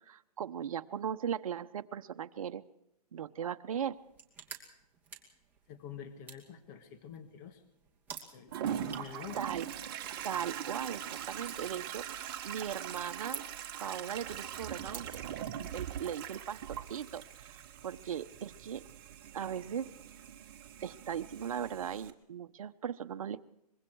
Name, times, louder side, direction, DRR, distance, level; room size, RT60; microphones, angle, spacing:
voice 1, 0.1-2.6 3.1-4.0 9.3-9.7 10.2-13.4 13.8-15.2 15.7-18.8 19.3-19.9 20.8-23.4, right 8 dB, 60° right, 9 dB, 1.1 m, -38 dB
sound 1, 3.9-16.0, right 6 dB, 10° right, 2.5 m, -52 dB
voice 2, 5.7-7.6 8.3-9.4, left 8 dB, 30° left, 7 dB, 2.0 m, -47 dB
Toilet flush, 8.5-22.1, right 9 dB, 35° right, 1.8 m, -42 dB
24.5 x 22.5 x 4.8 m, 0.83 s
hypercardioid pair, 155°, 20 cm